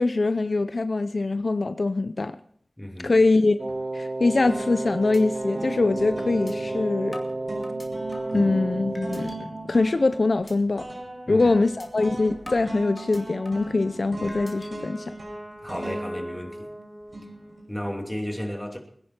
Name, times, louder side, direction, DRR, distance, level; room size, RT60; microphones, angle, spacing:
voice 1, 0.0-2.4 3.0-3.6 3.9-7.2 8.3-10.8 11.3-15.0, left 3 dB, 65° left, 0.6 m, -23 dB
voice 2, 2.8-3.2 8.3-8.5 11.3-11.5 15.6-16.7 17.7-18.8, left 1 dB, 10° left, 2.9 m, -33 dB
Wind instrument woodwind instrument, 3.6-9.3, right 2 dB, 35° right, 0.9 m, -31 dB
sound 1, 3.7-4.1 4.5-17.9, right 1 dB, 65° right, 6.0 m, -38 dB
sound 2, 5.1-5.2 5.6-5.7 6.5-6.6 7.1-8.4 8.9-9.4 9.8-10.0 10.5-10.6 11.0-11.2 11.8-11.9 12.5-13.7 14.3-14.7, left 1 dB, 35° left, 2.4 m, -44 dB
22.0 x 10.5 x 4.4 m
wide cardioid pair, 60°, 0 cm